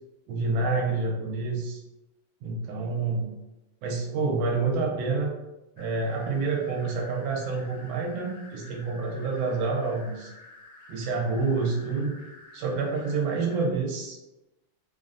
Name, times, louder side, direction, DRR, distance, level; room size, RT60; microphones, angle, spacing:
voice 1, 0.3-1.8 2.4-3.3 3.8-5.3 5.8-10.3 10.9-12.1 12.5-14.2, right 4 dB, 85° right, 0 dB, 1.4 m, -28 dB
sound 1, 5.8-13.6, left 2 dB, 85° left, 1.5 m, -50 dB
3.4 x 2.0 x 2.5 m, 0.98 s
omnidirectional pair, 2.1 m